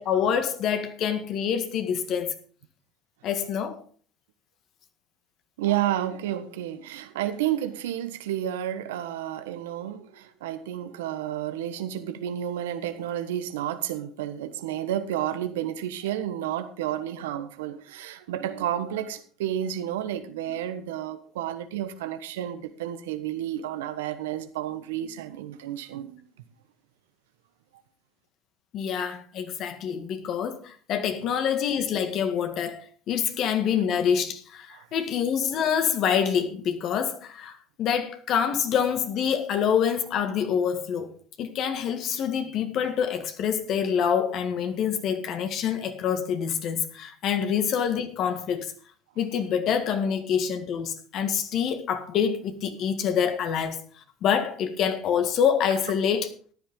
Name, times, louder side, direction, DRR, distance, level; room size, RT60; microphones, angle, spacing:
voice 1, 0.0-2.3 3.2-3.8 28.7-48.7 49.2-53.8 54.2-56.3, left 8 dB, 55° left, 1.9 m, -26 dB
voice 2, 5.6-26.2 34.7-34.9, right 11 dB, 85° right, 1.2 m, -31 dB
14.0 x 10.5 x 3.8 m
hypercardioid pair, 80°, 0 cm